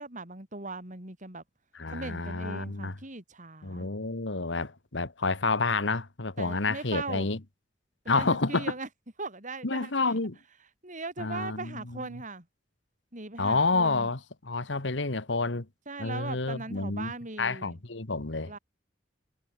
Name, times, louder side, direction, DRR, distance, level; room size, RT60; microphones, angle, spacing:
voice 1, 0.0-1.4 1.9-3.9 6.4-7.3 8.0-8.9 9.2-9.9 10.8-12.5 13.1-14.1 15.9-17.8 18.5-18.6, right 3 dB, 45° right, 6.1 m, -39 dB
voice 2, 1.7-2.9 3.6-7.4 8.1-8.7 9.6-10.4 11.2-11.8 13.4-14.2 14.5-15.7 16.0-17.1 17.4-18.5, left 3 dB, 75° left, 1.7 m, -29 dB
head